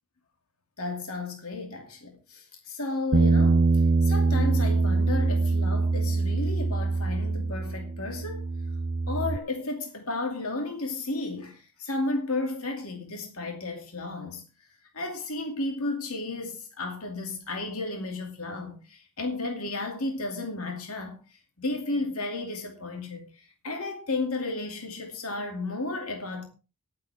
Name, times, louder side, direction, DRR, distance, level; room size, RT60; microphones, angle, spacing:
voice 1, 0.8-3.6 4.0-8.4 9.1-14.4 14.9-21.1 21.6-23.2 23.6-26.4, left 2 dB, 85° left, 2.5 m, -33 dB
Bass guitar, 3.1-9.4, right 3 dB, 45° right, 0.6 m, -24 dB
19.0 x 8.0 x 3.5 m
head